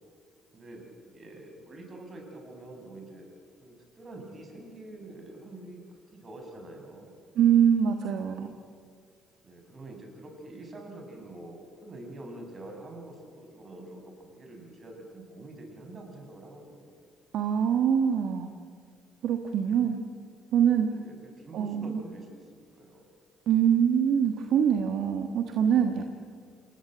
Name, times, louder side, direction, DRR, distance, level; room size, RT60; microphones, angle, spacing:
voice 1, 0.5-3.3 3.6-5.8 6.1-7.2 9.4-17.0 19.6-19.9 20.9-23.1, right 2 dB, 40° right, 3 dB, 6.8 m, -46 dB
voice 2, 7.3-8.5 17.3-18.5 19.2-20.0 20.5-20.9 21.5-22.0 23.5-26.1, right 8 dB, 65° right, 6 dB, 1.4 m, -24 dB
27.5 x 18.5 x 8.0 m, 2.1 s
hypercardioid pair, 50°, 0 cm